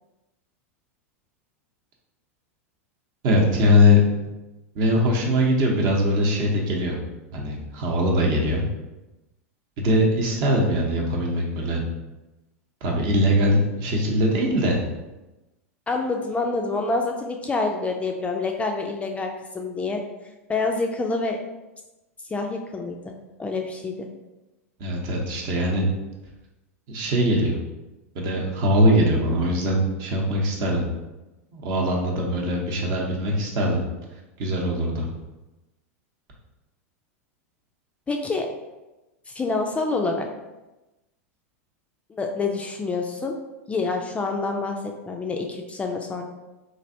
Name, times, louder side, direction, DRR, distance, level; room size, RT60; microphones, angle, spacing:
voice 1, 3.2-4.1 4.7-6.9 7.3-8.6 9.8-11.8 12.8-14.8 24.8-25.8 26.9-27.6 28.1-30.8 31.5-33.8 34.4-35.1, left 1 dB, 50° right, -1 dB, 0.7 m, -21 dB
voice 2, 15.9-20.0 20.5-21.4 22.3-24.1 38.1-38.5 39.3-40.3 42.1-43.3 43.7-44.8 45.1-46.2, left 3 dB, 15° left, 2 dB, 0.3 m, -27 dB
3.1 x 2.5 x 2.6 m, 1.1 s
hypercardioid pair, 95°, 8 cm